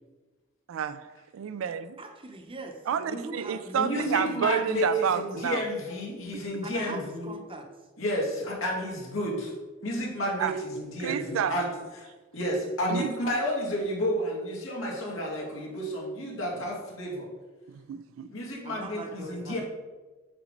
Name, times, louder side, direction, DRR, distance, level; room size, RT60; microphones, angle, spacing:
voice 1, 0.7-2.0 2.9-5.7 6.3-6.4 10.4-10.6 11.0-11.6 12.9-13.1 17.7-18.3, right 7 dB, 80° right, 0.3 m, -30 dB
voice 2, 2.0-2.8 3.1-4.6 6.6-7.7 18.6-19.6, right 2 dB, 25° right, 0.7 m, -42 dB
voice 3, 3.8-7.3 8.0-9.5 9.8-11.7 12.0-12.1 12.3-17.3 18.3-19.6, equal, 85° left, 1.9 m, -31 dB
5.9 x 3.9 x 5.1 m
head